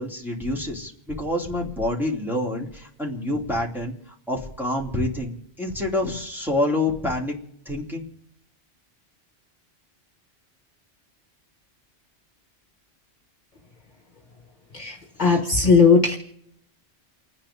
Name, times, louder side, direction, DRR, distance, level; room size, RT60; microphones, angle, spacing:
voice 1, 0.0-3.9 4.3-7.4 7.6-8.1 15.2-15.4, left 1 dB, ahead, -3 dB, 3.0 m, -27 dB
voice 2, 14.7-16.2, left 4 dB, 40° left, 2 dB, 1.5 m, -18 dB
29.5 x 10.0 x 3.8 m, 0.72 s
omnidirectional pair, 1.2 m